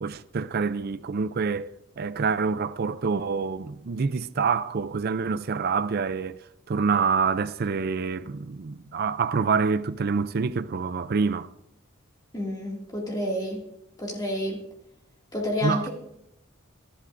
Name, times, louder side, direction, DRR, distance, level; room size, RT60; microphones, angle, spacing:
voice 1, 0.0-6.4 6.7-11.5 15.6-15.9, right 5 dB, 50° right, 0.4 m, -26 dB
voice 2, 12.3-13.7 14.0-14.6 15.3-15.9, left 1 dB, 20° left, 2.2 m, -29 dB
23.5 x 11.5 x 2.6 m
head